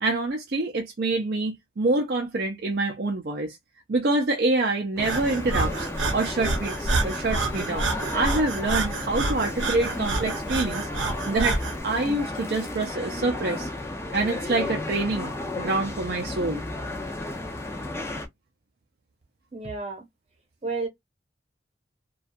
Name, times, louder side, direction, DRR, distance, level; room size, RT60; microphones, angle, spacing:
voice 1, 0.0-3.6 3.9-10.9 11.3-13.7 14.1-16.6, right 2 dB, 55° right, 0.5 m, -26 dB
sound 1, 5.0-18.3, left 2 dB, 15° left, 0.4 m, -33 dB
Breathing, 5.0-11.8, right 3 dB, 90° right, 0.8 m, -28 dB
voice 2, 19.5-20.1 20.6-20.9, right 3 dB, 35° right, 0.9 m, -31 dB
2.6 x 2.3 x 2.4 m
head